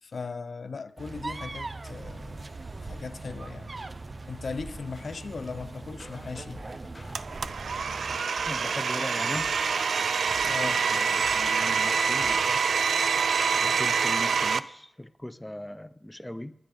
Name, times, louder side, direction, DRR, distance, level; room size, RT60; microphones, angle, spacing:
voice 1, 0.0-2.5 2.7-3.7 4.3-6.6 10.4-10.8 13.6-13.8, left 4 dB, 55° left, 0.6 m, -38 dB
sound 1, 1.0-8.3, right 3 dB, 35° right, 0.6 m, -40 dB
sound 2, 5.5-13.1, left 2 dB, 35° left, 1.3 m, -50 dB
Domestic sounds home sounds, 7.1-14.6, right 5 dB, 80° right, 0.4 m, -26 dB
voice 2, 8.5-9.5 10.5-12.6 13.5-16.5, left 1 dB, 10° left, 0.4 m, -39 dB
20.0 x 10.0 x 3.5 m
wide cardioid pair, 115°, 0 cm